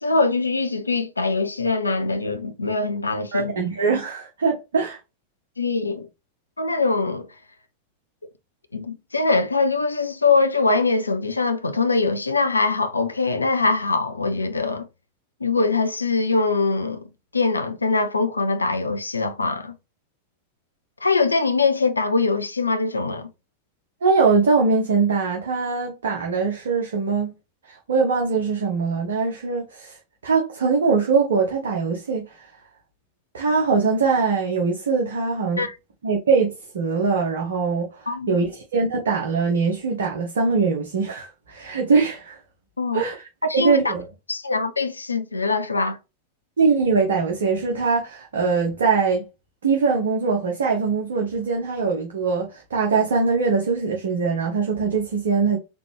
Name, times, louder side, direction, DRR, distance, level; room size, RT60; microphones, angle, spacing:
voice 1, 0.0-3.5 5.6-6.1 6.6-7.3 8.7-14.9 15.4-17.0 17.3-19.7 21.0-23.3 35.6-35.8 38.1-38.4 42.8-43.0 43.4-43.9 44.3-46.0, left 3 dB, 80° left, 0.5 m, -22 dB
voice 2, 3.3-5.0 24.0-27.3 27.7-30.0 30.2-32.5 33.3-35.6 36.0-42.4 42.9-43.3 43.5-44.0 46.6-49.2 49.6-55.6, right 4 dB, 65° right, 1.0 m, -22 dB
4.0 x 3.4 x 3.3 m
figure-of-eight pair, 90°, 0 cm